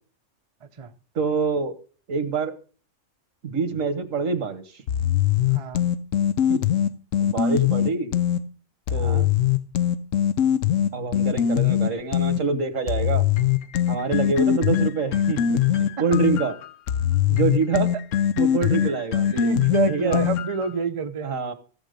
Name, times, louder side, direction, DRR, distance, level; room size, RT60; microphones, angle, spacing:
voice 1, 0.6-0.9 5.5-5.8 8.9-9.3 16.0-16.1 18.6-19.0 19.2-21.3, right 5 dB, 30° right, 7 dB, 0.7 m, -29 dB
voice 2, 1.1-1.8 2.1-2.5 3.4-4.6 6.5-6.6 7.2-8.1 8.9-9.3 10.9-13.2 13.9-16.5 17.3-17.9 18.4-19.3 19.9-20.2 21.2-21.5, right 5 dB, 80° right, 10 dB, 1.7 m, -26 dB
sound 1, 4.9-8.4 8.9-12.4 12.9-20.7, left 10 dB, 80° left, 1.1 m, -22 dB
15.0 x 7.2 x 5.1 m, 0.40 s
omnidirectional pair, 1.3 m